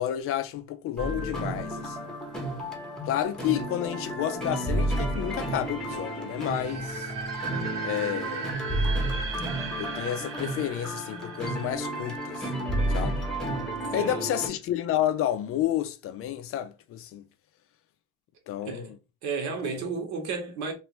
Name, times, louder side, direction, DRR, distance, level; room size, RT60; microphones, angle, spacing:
voice 1, 0.0-2.0 3.0-7.1 7.8-8.6 9.8-12.5 12.9-13.2 13.9-17.2 18.5-18.9 19.7-19.8, left 11 dB, 50° left, 0.4 m, -30 dB
sound 1, 1.0-14.5, right 1 dB, ahead, 0.9 m, -31 dB
sound 2, 6.4-13.3, right 5 dB, 45° right, 0.7 m, -38 dB
voice 2, 13.9-14.2 18.6-18.9 19.2-20.7, right 4 dB, 70° right, 1.2 m, -32 dB
3.1 x 2.5 x 3.0 m
cardioid pair, 140°, 29 cm